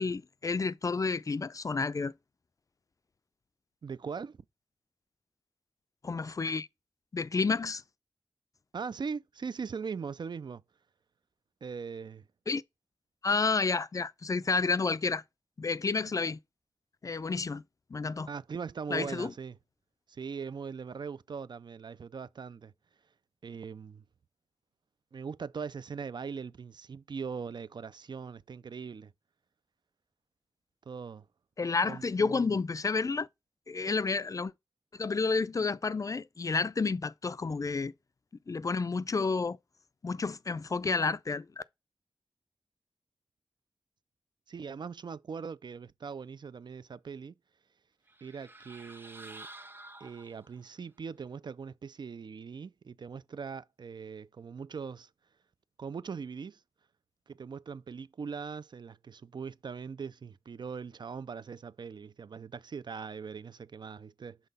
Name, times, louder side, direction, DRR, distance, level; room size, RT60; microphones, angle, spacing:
voice 1, 0.0-2.1 6.0-6.7 7.1-7.8 12.5-12.6 13.2-15.2 15.6-16.4 17.0-17.6 17.9-18.3 18.9-19.3 31.6-33.3 33.7-34.5 34.9-37.9 38.5-39.6 40.0-41.6, left 4 dB, 45° left, 0.3 m, -30 dB
voice 2, 3.8-4.4 8.7-10.6 11.6-12.3 18.3-19.6 20.1-22.7 23.4-24.0 25.1-29.1 30.9-31.3 31.8-32.5 44.5-47.3 48.2-49.5 50.0-55.1 55.8-56.6 57.3-64.4, right 5 dB, 65° right, 0.4 m, -40 dB
sound 1, 48.1-50.7, right 2 dB, 25° right, 0.6 m, -50 dB
5.7 x 3.6 x 5.4 m
cardioid pair, 55°, 8 cm